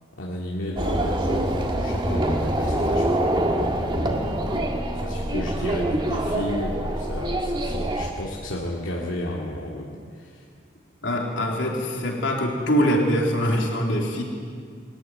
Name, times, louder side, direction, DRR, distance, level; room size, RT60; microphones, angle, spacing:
voice 1, 0.2-3.0 3.4-3.7 3.9-10.4, left 1 dB, 85° left, -3 dB, 2.4 m, -33 dB
sound 1, 0.8-8.1, right 1 dB, 25° right, 1.8 m, -25 dB
voice 2, 11.0-14.2, equal, 70° left, -1 dB, 3.7 m, -23 dB
22.0 x 14.5 x 9.6 m, 2.2 s
head